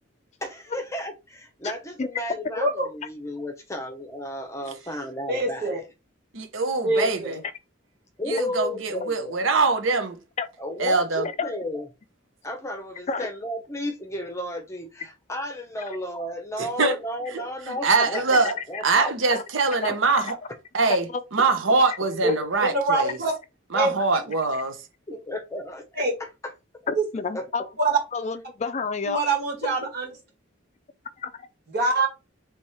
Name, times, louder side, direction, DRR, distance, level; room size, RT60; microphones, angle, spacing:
voice 1, 0.4-5.8 8.2-9.4 10.6-11.9 12.4-19.1 25.3-26.3 27.3-27.4, left 1 dB, 15° left, 0.8 m, -33 dB
voice 2, 5.3-5.8 6.8-7.4 22.2-22.3 22.6-23.3 23.8-23.9 26.0-26.1 27.0-27.1 27.8-28.0 29.0-30.1 31.7-32.1, right 2 dB, 50° right, 2.0 m, -24 dB
voice 3, 6.3-7.4 8.3-10.2 10.8-11.3 16.6-17.0 17.7-18.6 18.8-20.3 20.7-21.1 21.3-23.2 23.7-24.8, right 4 dB, 80° right, 0.8 m, -23 dB
voice 4, 19.8-20.4 21.1-21.2 21.9-22.0 24.5-24.6 26.9-27.7 28.1-29.2 31.2-31.3, left 4 dB, 35° left, 0.4 m, -29 dB
3.4 x 3.2 x 4.2 m
head